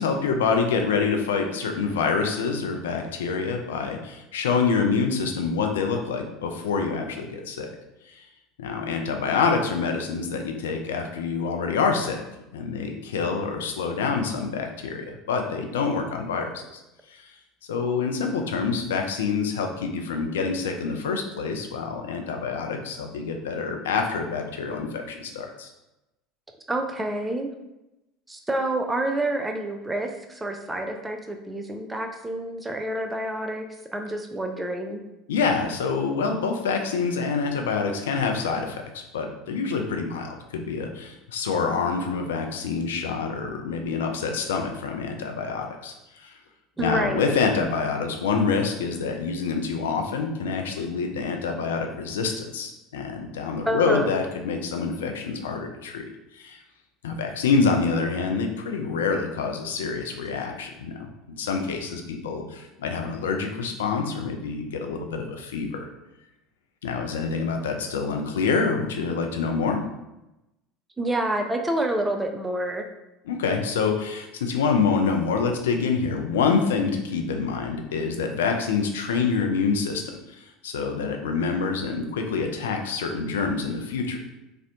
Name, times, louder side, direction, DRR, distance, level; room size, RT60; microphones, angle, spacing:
voice 1, 0.0-7.7 8.1-8.2 8.6-12.2 12.5-16.8 17.1-17.3 17.7-25.7 35.3-46.3 46.8-56.1 56.3-56.6 57.0-61.1 61.4-65.9 66.8-69.8 73.3-80.1 80.4-84.2, left 5 dB, 75° left, 4 dB, 0.3 m, -26 dB
voice 2, 26.7-27.5 28.3-33.6 33.9-35.0 46.8-47.3 53.7-54.1 71.0-72.9, right 1 dB, 15° right, 4 dB, 0.4 m, -28 dB
2.5 x 2.0 x 2.7 m, 0.94 s
figure-of-eight pair, 70°, 0 cm